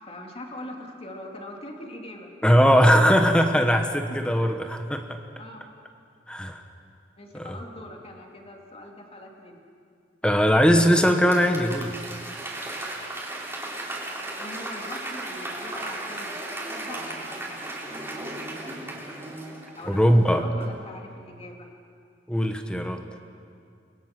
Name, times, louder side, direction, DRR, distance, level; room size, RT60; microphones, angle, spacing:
voice 1, 0.0-2.3 5.4-5.7 7.2-9.7 13.6-13.9 14.4-17.6 19.8-21.7, left 1 dB, 35° left, 1 dB, 2.8 m, -42 dB
voice 2, 2.4-5.2 6.3-6.6 7.3-7.6 10.2-12.0 19.9-20.4 22.3-23.0, equal, 5° left, 5 dB, 1.3 m, -20 dB
Applause / Crowd, 10.8-20.2 20.6-20.7, right 1 dB, 15° right, 4.0 m, -36 dB
30.0 x 21.5 x 6.0 m, 2.3 s
head